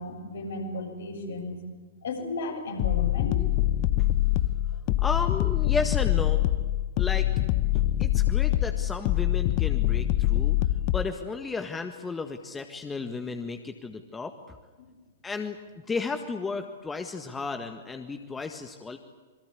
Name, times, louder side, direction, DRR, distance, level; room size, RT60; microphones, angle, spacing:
voice 1, 0.0-1.6 2.0-3.4, left 2 dB, 65° left, 2 dB, 7.0 m, -34 dB
sound 1, 2.8-11.1, left 14 dB, 40° left, 0.9 m, -24 dB
voice 2, 5.0-6.5 7.0-7.3 8.0-10.6 10.9-14.6 15.2-15.6 15.9-19.0, left 4 dB, 10° left, 6 dB, 1.7 m, -33 dB
27.5 x 23.0 x 8.4 m, 1.3 s
figure-of-eight pair, 105°, 0 cm